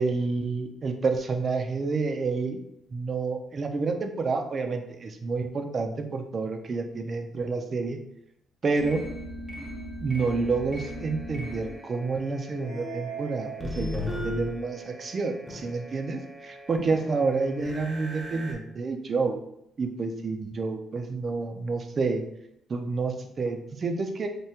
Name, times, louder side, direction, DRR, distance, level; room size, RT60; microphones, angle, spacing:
voice 1, 0.0-2.6 2.9-8.0 8.6-9.0 10.0-19.4 19.8-22.2 22.7-24.3, right 4 dB, 45° right, 6 dB, 0.4 m, -29 dB
sound 1, 8.8-18.5, equal, ahead, 0.7 m, -38 dB
3.4 x 2.2 x 2.8 m, 0.77 s
cardioid pair, 90°, 0 cm